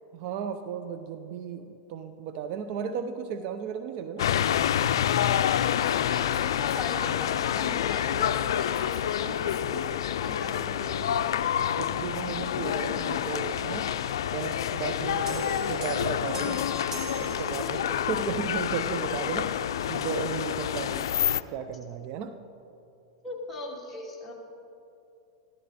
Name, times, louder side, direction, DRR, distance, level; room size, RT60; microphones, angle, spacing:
voice 1, 0.1-4.3 11.6-13.9 14.3-16.9 17.2-22.4, right 7 dB, 50° right, 9 dB, 0.6 m, -35 dB
sound 1, 4.2-21.4, left 10 dB, 80° left, 0.4 m, -28 dB
voice 2, 5.6-9.9 10.2-11.4 17.6-17.8 23.2-24.3, left 2 dB, 5° left, -5 dB, 2.9 m, -39 dB
sound 2, 15.3-18.1, right 3 dB, 25° right, 2.2 m, -39 dB
15.0 x 12.5 x 4.2 m, 2.7 s
hypercardioid pair, 125°, 2 cm